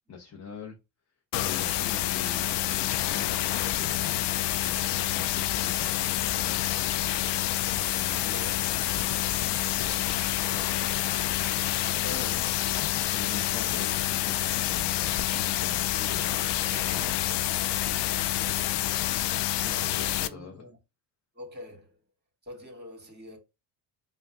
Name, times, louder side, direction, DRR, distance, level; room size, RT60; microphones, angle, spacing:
voice 1, 0.1-0.8 1.4-4.1 4.6-8.3 9.7-10.3 11.9-12.4 12.9-17.7 19.3-20.6, left 5 dB, 35° left, 0.9 m, -44 dB
sound 1, 1.3-20.3, left 14 dB, 60° left, 0.5 m, -28 dB
voice 2, 1.7-2.1 8.2-8.7 11.8-12.6 19.8-20.8 21.3-22.0 22.4-23.4, left 2 dB, 20° right, 2.0 m, -45 dB
5.1 x 2.4 x 2.3 m
supercardioid pair, 70°, 48 cm